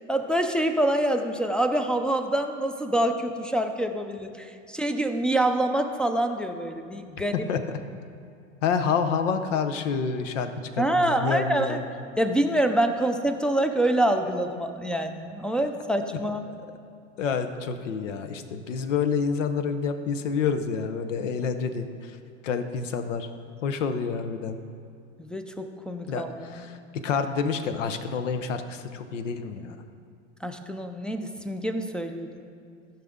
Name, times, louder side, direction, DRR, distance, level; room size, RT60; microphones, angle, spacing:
voice 1, 0.1-7.3 10.8-11.8 12.2-16.5 25.2-26.8 30.4-32.3, right 1 dB, 5° left, 4 dB, 0.4 m, -26 dB
voice 2, 7.3-7.8 8.6-10.5 10.8-11.8 17.2-22.2 22.4-23.3 23.6-24.6 26.1-29.8, left 6 dB, 85° left, 8 dB, 0.8 m, -28 dB
14.5 x 5.8 x 3.7 m, 2.4 s
hypercardioid pair, 100°, 37 cm